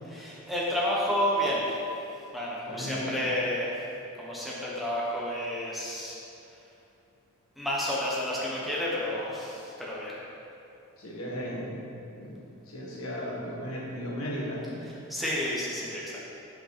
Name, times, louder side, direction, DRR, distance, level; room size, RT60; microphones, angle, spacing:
voice 1, 0.0-1.8 2.3-3.8 4.1-6.2 6.5-6.7 7.6-10.2 14.8-16.2, equal, ahead, -6 dB, 1.0 m, -30 dB
voice 2, 2.7-3.3 11.0-11.8 12.2-12.4 12.7-14.8, equal, 75° left, -4 dB, 1.7 m, -35 dB
6.0 x 5.1 x 6.7 m, 2.7 s
head